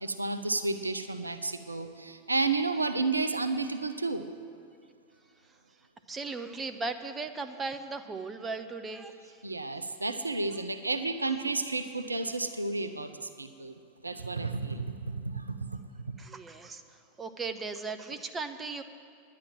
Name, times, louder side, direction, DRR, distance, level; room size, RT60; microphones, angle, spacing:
voice 1, 0.0-4.2 9.4-13.7 14.0-15.7, right 3 dB, 80° right, 9 dB, 0.6 m, -31 dB
voice 2, 6.1-9.4 14.1-14.2 16.2-18.8, right 4 dB, 15° right, 8 dB, 0.7 m, -37 dB
10.5 x 9.9 x 7.6 m, 2.2 s
figure-of-eight pair, 90°, 0 cm